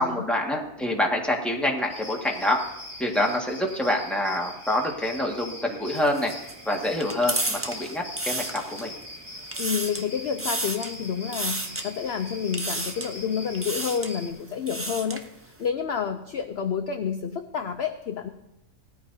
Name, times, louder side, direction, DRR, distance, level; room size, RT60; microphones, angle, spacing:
voice 1, 0.0-2.6 3.0-6.3 6.6-8.9, left 1 dB, ahead, -1 dB, 1.7 m, -26 dB
sound 1, 1.9-14.3, left 1 dB, 70° right, 3.7 m, -42 dB
sound 2, 6.0-9.0 9.4-10.1 10.4-11.0 11.3-11.9 12.5-13.2 13.5-14.1 14.5-15.3, right 2 dB, 20° right, 0.3 m, -32 dB
voice 2, 9.6-18.3, left 7 dB, 55° left, 6 dB, 0.8 m, -29 dB
18.0 x 13.5 x 2.7 m, 0.93 s
omnidirectional pair, 1.5 m